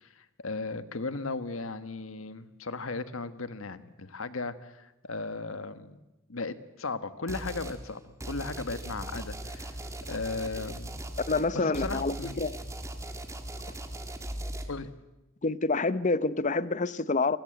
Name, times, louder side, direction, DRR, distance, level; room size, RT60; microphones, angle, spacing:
voice 1, 0.0-6.0 6.3-9.8 10.1-10.9 11.5-12.3 14.7-14.9, left 3 dB, 85° left, 1.4 m, -36 dB
sound 1, 7.3-7.8 8.2-14.7, right 1 dB, 15° right, 2.0 m, -39 dB
voice 2, 11.3-12.6 15.4-17.4, left 3 dB, 35° left, 0.8 m, -27 dB
28.5 x 20.0 x 7.9 m
head